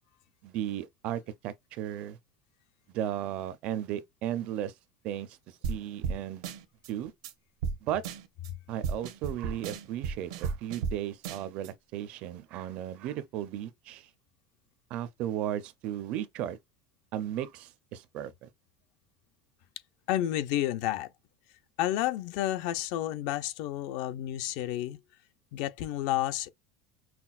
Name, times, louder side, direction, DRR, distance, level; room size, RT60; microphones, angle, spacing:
voice 1, 0.4-2.2 2.9-4.7 5.0-6.5 6.9-7.1 7.8-8.0 8.7-14.1 14.9-16.6 17.1-18.5, right 11 dB, 40° right, 0.4 m, -35 dB
sound 1, 5.6-5.8 6.0-6.2 6.4-6.9 7.2-7.3 7.6-7.8 8.0-8.5 8.8-11.0 11.2-11.7, right 5 dB, 90° right, 0.8 m, -33 dB
voice 2, 20.1-21.1 21.8-25.0 25.5-26.5, left 13 dB, 55° left, 0.5 m, -30 dB
5.7 x 2.1 x 2.4 m
cardioid pair, 175°, 3 cm